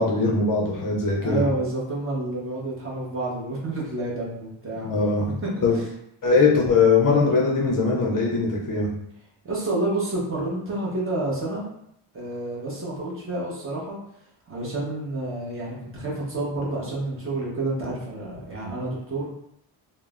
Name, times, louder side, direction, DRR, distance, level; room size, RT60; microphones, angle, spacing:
voice 1, 0.0-1.4 4.8-5.3 5.6-5.8 6.2-8.9, left 4 dB, 45° left, -2 dB, 0.5 m, -21 dB
voice 2, 1.2-5.0 5.4-5.9 9.4-11.6 12.1-14.0 14.5-19.3, right 2 dB, 25° right, -5 dB, 0.7 m, -29 dB
3.0 x 2.0 x 2.3 m, 0.75 s
cardioid pair, 130°, 49 cm